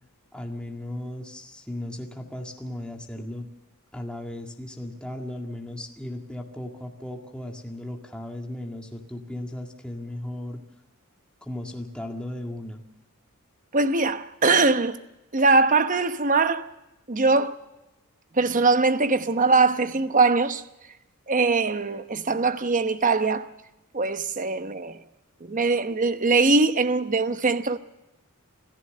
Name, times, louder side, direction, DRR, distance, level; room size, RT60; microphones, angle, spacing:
voice 1, 0.3-3.5 3.9-10.6 11.4-12.8, left 1 dB, 5° left, 2.0 m, -36 dB
voice 2, 13.7-15.0 15.3-16.7 17.1-17.6 18.3-20.6 21.3-23.5 23.9-25.0 25.4-27.8, right 3 dB, 35° right, 0.9 m, -22 dB
27.5 x 14.5 x 6.6 m
head